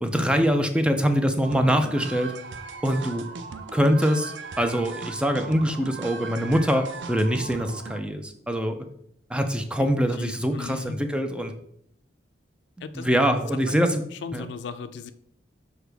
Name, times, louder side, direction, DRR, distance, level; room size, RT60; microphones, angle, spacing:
voice 1, 0.0-2.3 2.8-3.2 3.7-8.8 9.3-11.5 12.9-14.0 14.3-14.5, equal, 5° right, 6 dB, 0.5 m, -24 dB
sound 1, 1.4-8.0, right 4 dB, 85° right, 0.6 m, -38 dB
voice 2, 10.2-11.0 12.8-13.1 14.2-15.1, left 5 dB, 75° left, 11 dB, 0.4 m, -36 dB
6.3 x 4.9 x 3.4 m, 0.70 s
head